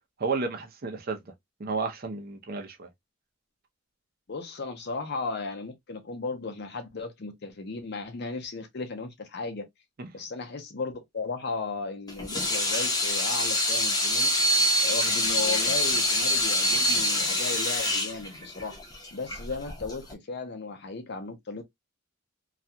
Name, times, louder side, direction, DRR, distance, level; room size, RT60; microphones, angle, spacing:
voice 1, 0.2-1.2 1.6-2.9 10.0-10.1, right 4 dB, 50° right, 0.6 m, -32 dB
voice 2, 4.3-9.7 10.1-14.3 14.8-18.8 19.1-21.6, left 3 dB, 55° left, 0.6 m, -35 dB
Water tap faucet / Sink (filling or washing), 12.1-20.1, left 1 dB, 20° left, 0.7 m, -25 dB
2.4 x 2.2 x 2.7 m
head